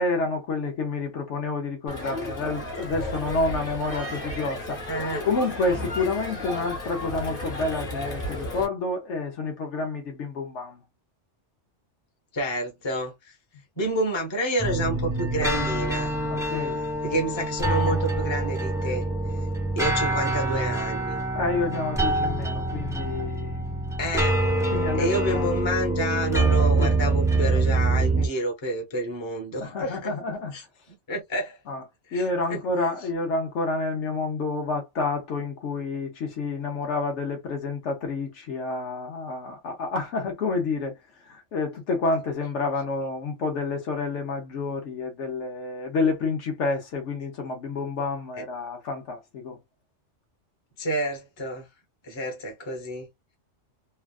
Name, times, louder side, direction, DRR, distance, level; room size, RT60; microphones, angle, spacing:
voice 1, 0.0-4.9 5.3-10.8 16.3-16.8 21.3-23.6 24.7-25.5 26.8-26.9 28.1-28.3 29.6-30.5 31.7-31.8 32.1-49.6, left 3 dB, 80° left, 1.1 m, -29 dB
Crowd, 1.9-8.6, left 1 dB, 50° left, 1.3 m, -33 dB
voice 2, 4.9-5.2 12.3-13.3 13.8-16.1 17.0-19.0 19.8-21.2 24.0-24.4 25.0-30.6 31.1-31.6 32.1-32.2 32.5-32.6 50.8-51.7 52.0-53.1, equal, 25° left, 1.0 m, -29 dB
sound 1, 14.6-28.3, right 2 dB, 5° right, 0.6 m, -25 dB
3.2 x 2.3 x 2.3 m
omnidirectional pair, 1.2 m